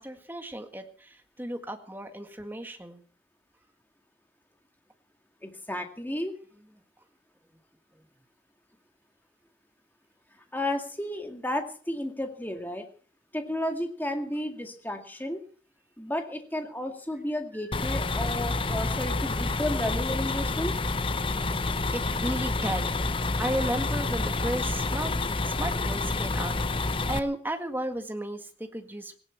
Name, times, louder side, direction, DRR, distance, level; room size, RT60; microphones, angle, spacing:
voice 1, 0.0-3.0 18.7-18.8 21.9-25.1 25.4-29.2, right 1 dB, 10° right, 6 dB, 1.8 m, -34 dB
voice 2, 5.4-6.3 10.5-12.9 13.3-15.4 16.0-20.7, left 1 dB, 10° left, 4 dB, 2.1 m, -32 dB
sound 1, 17.7-27.2, left 3 dB, 25° left, 0.8 m, -28 dB
18.0 x 17.5 x 4.5 m, 0.41 s
head